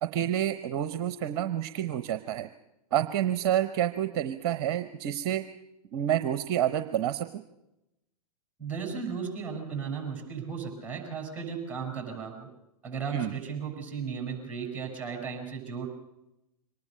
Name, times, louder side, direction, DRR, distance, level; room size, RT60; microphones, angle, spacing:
voice 1, 0.0-2.5 2.9-5.4 5.9-7.4 13.1-13.4, right 11 dB, 45° right, 11 dB, 0.9 m, -28 dB
voice 2, 8.6-12.5 12.8-15.9, right 6 dB, 10° right, 4 dB, 6.9 m, -35 dB
24.0 x 19.5 x 6.7 m, 0.90 s
figure-of-eight pair, 110°, 19 cm